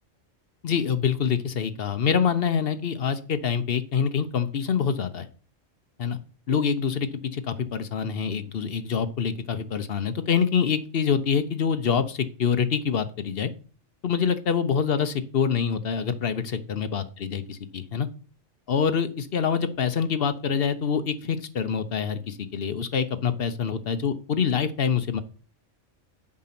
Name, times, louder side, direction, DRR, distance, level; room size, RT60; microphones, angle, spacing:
voice 1, 0.6-5.3 6.0-6.2 6.5-13.5 14.0-17.4 17.7-18.1 18.7-25.2, left 7 dB, 55° left, 10 dB, 0.8 m, -25 dB
7.5 x 5.2 x 5.8 m, 0.38 s
omnidirectional pair, 1.3 m